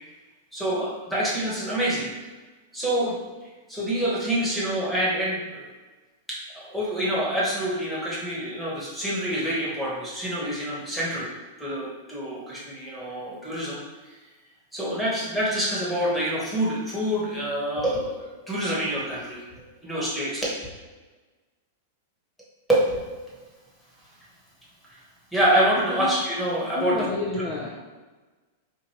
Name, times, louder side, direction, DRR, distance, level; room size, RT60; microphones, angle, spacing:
voice 1, 0.5-2.1 2.7-3.2 3.7-5.7 6.3-11.3 11.6-13.8 14.7-20.5 22.7-23.0 24.9-25.0 25.3-27.0 27.3-27.4, right 1 dB, ahead, -7 dB, 1.2 m, -26 dB
voice 2, 26.8-27.7, left 3 dB, 25° left, -3 dB, 0.4 m, -30 dB
4.4 x 2.5 x 3.0 m, 1.3 s
supercardioid pair, 140°, 0 cm